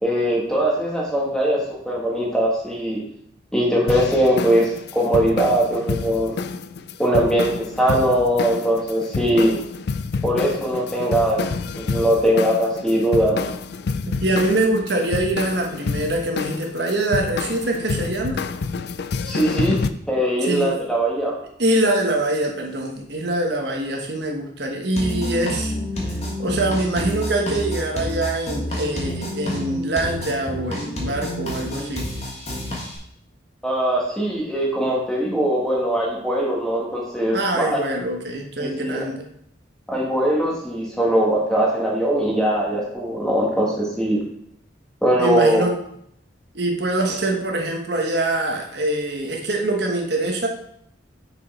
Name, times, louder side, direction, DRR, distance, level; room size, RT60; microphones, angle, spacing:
voice 1, 0.0-3.0 3.5-6.3 7.0-9.5 10.2-11.4 11.8-13.5 19.2-19.8 20.1-21.3 33.6-37.7 38.6-39.1 39.9-44.2 45.0-45.6, right 1 dB, 5° left, -3 dB, 1.7 m, -21 dB
sound 1, 3.9-19.9, left 4 dB, 60° left, 0.4 m, -28 dB
voice 2, 14.2-18.4 20.4-20.7 21.6-32.1 37.3-39.3 45.2-45.7 46.5-50.5, right 2 dB, 60° right, 2 dB, 1.2 m, -24 dB
sound 2, 25.0-33.0, left 1 dB, 35° left, 1.6 m, -29 dB
6.3 x 5.7 x 4.3 m, 0.70 s
head